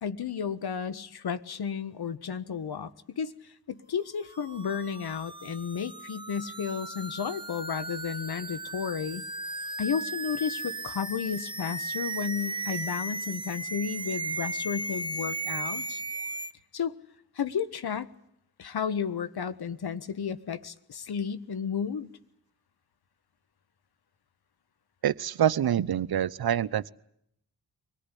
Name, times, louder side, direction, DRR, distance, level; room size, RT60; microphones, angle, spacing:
voice 1, 0.0-9.2 9.8-16.0 16.7-16.9 17.3-18.1 18.6-22.1, left 7 dB, 60° left, 13 dB, 1.5 m, -33 dB
sound 1, 4.3-16.5, right 2 dB, 10° right, 1.2 m, -36 dB
voice 2, 25.0-26.9, right 10 dB, 60° right, 17 dB, 0.9 m, -26 dB
24.0 x 18.5 x 10.0 m, 0.74 s
supercardioid pair, 50°, 42 cm